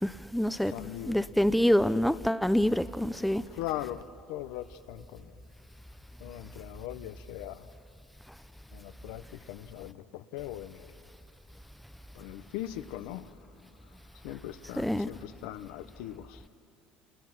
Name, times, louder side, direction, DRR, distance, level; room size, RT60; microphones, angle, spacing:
voice 1, 0.0-0.7 1.1-3.4 14.8-15.1, equal, ahead, 0.5 m, -26 dB
voice 2, 0.7-1.3 3.5-4.0 4.3-5.4 6.2-7.8 8.7-11.0 12.1-13.4 13.8-16.5, left 14 dB, 85° left, 0.9 m, -40 dB
29.5 x 29.5 x 6.1 m
cardioid pair, 125°, 3 cm